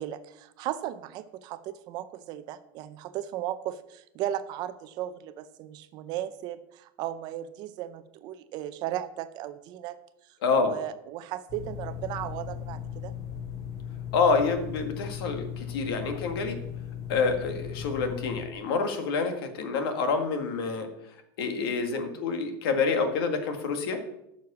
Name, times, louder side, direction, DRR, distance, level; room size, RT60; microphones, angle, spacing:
voice 1, 0.0-10.0 10.6-13.1, right 12 dB, 35° right, 12 dB, 0.5 m, -36 dB
voice 2, 10.4-10.7 14.1-16.6 17.1-20.9 21.4-24.0, left 4 dB, 80° left, 6 dB, 1.8 m, -27 dB
sound 1, 11.5-18.4, left 9 dB, 25° left, 2.3 m, -37 dB
9.6 x 6.4 x 6.9 m, 0.83 s
supercardioid pair, 175°, 12 cm